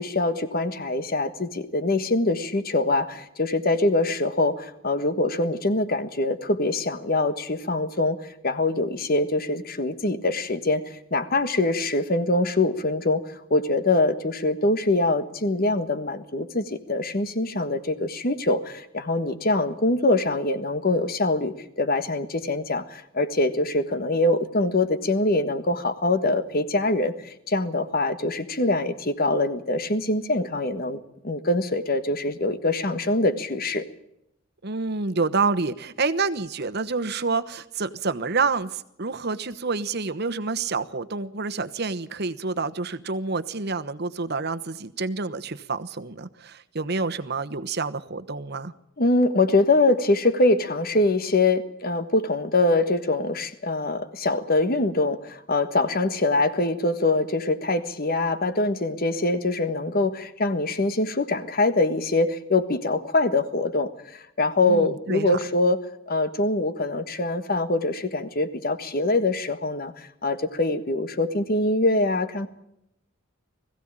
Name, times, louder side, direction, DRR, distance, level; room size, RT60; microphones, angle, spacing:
voice 1, 0.0-10.8 11.1-13.2 13.5-31.0 31.2-33.8 49.0-65.8 66.1-72.5, left 2 dB, 45° left, 11 dB, 1.5 m, -24 dB
voice 2, 34.6-48.7 64.7-65.3, right 4 dB, 55° right, 10 dB, 1.1 m, -28 dB
20.5 x 15.5 x 8.9 m, 0.81 s
head